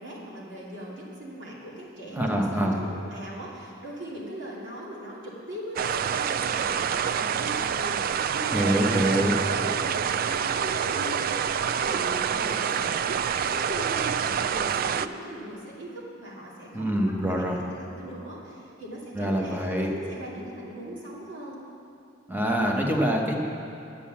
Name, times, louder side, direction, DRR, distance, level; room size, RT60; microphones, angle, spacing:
voice 1, 0.0-17.4 17.7-21.6, equal, 70° right, -6 dB, 2.7 m, -39 dB
voice 2, 2.1-2.8 8.5-9.3 16.7-17.6 19.1-19.9 22.3-23.4, right 1 dB, 10° right, 0 dB, 1.1 m, -25 dB
sound 1, 5.8-15.1, right 8 dB, 50° right, 0.3 m, -27 dB
11.5 x 8.5 x 7.3 m, 2.6 s
head